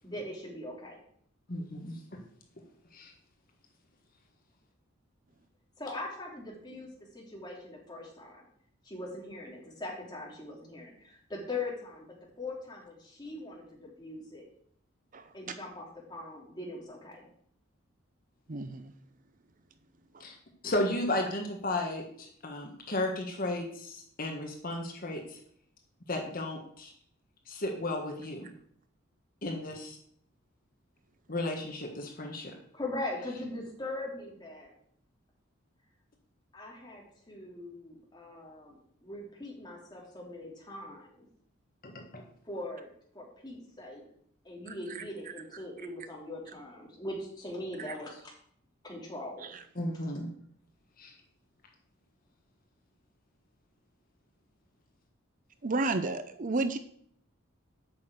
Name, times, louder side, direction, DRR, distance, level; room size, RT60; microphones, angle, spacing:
voice 1, 0.0-1.0 5.8-8.4 8.8-14.4 15.3-17.3 32.7-34.7 36.5-41.2 42.4-44.0 44.4-48.2 48.8-49.5, left 2 dB, 20° left, -3 dB, 3.2 m, -41 dB
voice 2, 1.5-2.2 2.9-3.1 20.2-20.3 20.6-25.4 26.1-26.9 27.5-28.5 29.4-30.0 31.3-32.5 41.8-42.2 49.8-50.3 51.0-51.1, left 1 dB, 45° left, 2 dB, 1.5 m, -34 dB
voice 3, 18.5-18.9 20.1-20.3 44.7-45.0 47.8-47.9 49.4-49.6 55.6-56.8, right 3 dB, 40° right, 10 dB, 0.6 m, -33 dB
8.6 x 6.3 x 7.8 m, 0.66 s
head